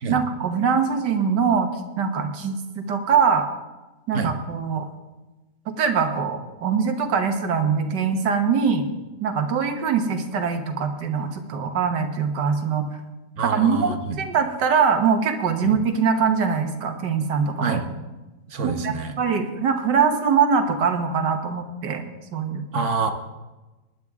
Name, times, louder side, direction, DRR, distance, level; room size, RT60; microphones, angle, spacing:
voice 1, 0.1-1.7 2.0-3.5 4.1-4.9 5.7-8.9 9.2-12.9 13.4-17.8 18.6-22.7, right 6 dB, 90° right, 6 dB, 1.8 m, -23 dB
voice 2, 13.4-14.2 15.7-15.8 17.6-17.9 18.5-19.1 22.7-23.1, right 4 dB, 50° right, 6 dB, 1.3 m, -26 dB
19.0 x 10.5 x 3.6 m, 1.1 s
omnidirectional pair, 1.8 m